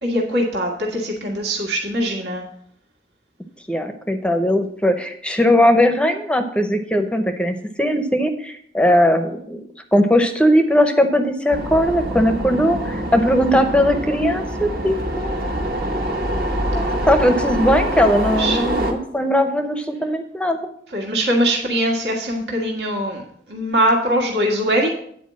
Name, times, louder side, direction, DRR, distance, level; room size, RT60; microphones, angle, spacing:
voice 1, 0.0-2.4 18.3-18.6 20.9-23.2 23.5-24.9, equal, 75° right, 0 dB, 1.8 m, -21 dB
voice 2, 3.7-9.6 9.9-15.4 16.7-20.6, equal, 5° left, 7 dB, 0.7 m, -19 dB
sound 1, 11.5-18.9, right 1 dB, 55° right, 1.4 m, -24 dB
9.5 x 4.5 x 7.3 m, 0.66 s
head